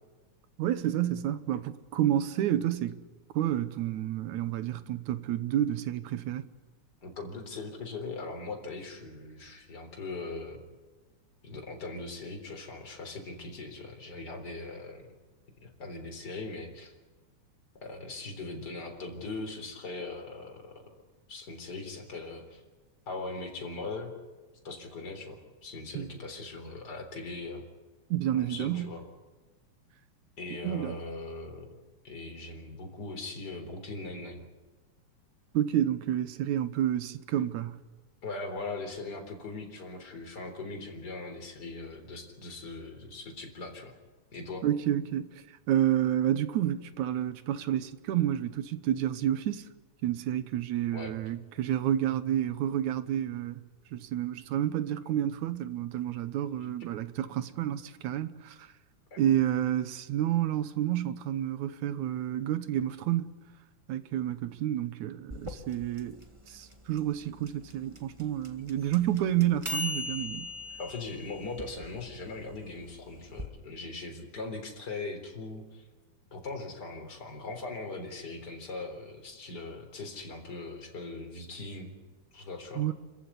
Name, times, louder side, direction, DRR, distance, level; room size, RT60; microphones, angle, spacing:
voice 1, 0.6-3.0 3.3-6.5 25.9-26.1 28.1-28.9 30.6-31.0 35.5-37.8 44.6-49.6 50.0-53.6 53.9-58.7 59.2-63.3 63.9-66.2 66.5-70.5 82.8-82.9, right 11 dB, 75° right, 2.4 m, -30 dB
voice 2, 7.0-10.6 11.4-15.2 15.6-16.9 17.8-20.8 21.3-22.6 23.1-24.1 24.6-27.6 28.3-29.0 30.4-31.7 32.0-34.4 38.2-43.9 44.3-44.6 50.9-51.1 59.1-59.2 70.8-75.9 76.3-81.9 82.3-82.8, left 3 dB, 30° left, 4.2 m, -40 dB
sound 1, 65.3-73.5, left 1 dB, 15° right, 1.1 m, -40 dB
28.0 x 14.5 x 9.8 m
omnidirectional pair, 3.4 m